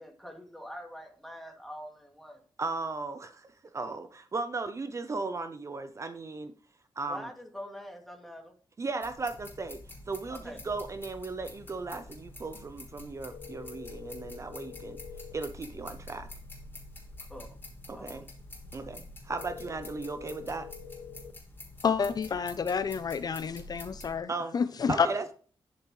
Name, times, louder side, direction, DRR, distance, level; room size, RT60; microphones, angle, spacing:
voice 1, 0.0-2.4 7.1-8.5 10.3-10.6 17.2-17.6 17.9-18.2, equal, ahead, 2.4 m, -44 dB
voice 2, 2.6-6.5 7.0-7.3 8.8-9.8 10.1-15.0 15.3-16.3 17.9-18.2 18.7-20.7 24.3-24.5 24.9-25.3, right 3 dB, 35° right, 0.7 m, -36 dB
sound 1, 9.0-24.2, left 2 dB, 25° left, 3.4 m, -47 dB
sound 2, 13.3-15.3 19.3-21.3, left 9 dB, 85° left, 0.8 m, -46 dB
voice 3, 21.8-25.1, left 6 dB, 50° left, 0.5 m, -29 dB
11.5 x 6.9 x 3.2 m
wide cardioid pair, 110°, 9 cm